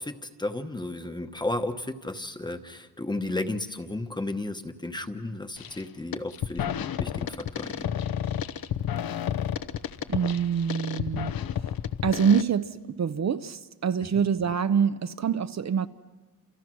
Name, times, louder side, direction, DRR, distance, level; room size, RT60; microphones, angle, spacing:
voice 1, 0.0-7.9, left 2 dB, 10° left, 8 dB, 1.0 m, -33 dB
sound 1, 5.6-5.8 6.1-12.4, left 10 dB, 75° left, 0.9 m, -31 dB
voice 2, 10.1-11.3 12.0-15.9, right 7 dB, 50° right, 11 dB, 0.7 m, -25 dB
29.5 x 28.5 x 6.2 m, 1.3 s
wide cardioid pair, 170°, 36 cm